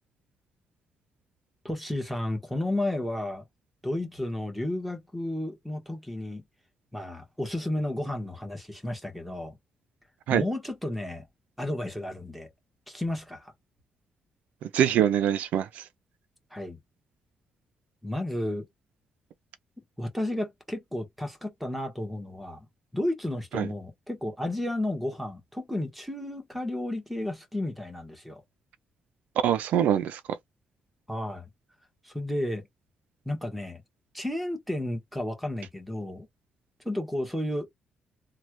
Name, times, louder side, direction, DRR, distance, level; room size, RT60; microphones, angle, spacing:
voice 1, 1.6-3.4 3.8-6.4 6.9-9.6 10.3-11.3 11.6-12.5 12.9-13.5 16.5-16.8 18.0-18.7 20.0-22.7 22.9-28.4 31.1-31.5 32.0-32.7 33.2-33.8 34.1-36.3 36.8-37.7, left 1 dB, ahead, 1.2 m, -32 dB
voice 2, 14.7-15.8 23.5-23.7 29.4-30.2, right 10 dB, 80° right, 0.4 m, -24 dB
3.2 x 2.3 x 2.9 m
cardioid pair, 120°, 3 cm